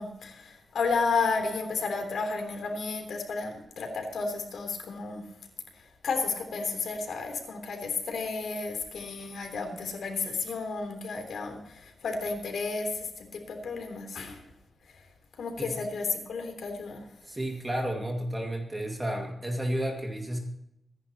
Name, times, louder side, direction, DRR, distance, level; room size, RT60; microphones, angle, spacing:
voice 1, 0.0-5.2 6.0-14.4 15.4-17.0, left 4 dB, 80° left, 4 dB, 3.6 m, -32 dB
voice 2, 17.2-20.4, right 1 dB, 15° right, 1 dB, 2.2 m, -32 dB
24.5 x 11.0 x 3.0 m, 0.83 s
wide cardioid pair, 145°, 0 cm